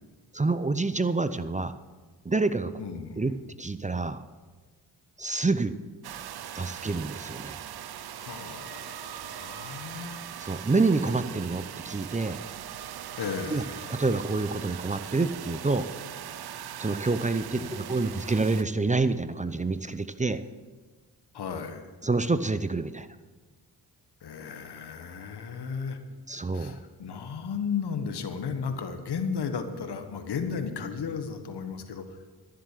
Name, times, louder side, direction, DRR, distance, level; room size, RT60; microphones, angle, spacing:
voice 1, 0.3-1.7 2.2-2.7 3.2-3.3 3.6-4.2 5.2-5.8 6.5-7.6 10.4-12.4 13.5-13.6 13.9-15.9 16.8-20.4 22.0-23.1 26.3-26.8, right 3 dB, 20° right, 12 dB, 0.6 m, -27 dB
voice 2, 2.8-3.3 8.2-10.3 13.2-13.9 17.5-17.8 21.3-21.9 24.2-26.0 26.5-32.0, left 6 dB, 75° left, 7 dB, 1.4 m, -34 dB
sound 1, 6.0-18.6, right 10 dB, 70° right, 0.7 m, -40 dB
13.0 x 7.6 x 6.7 m, 1.3 s
cardioid pair, 55°, 40 cm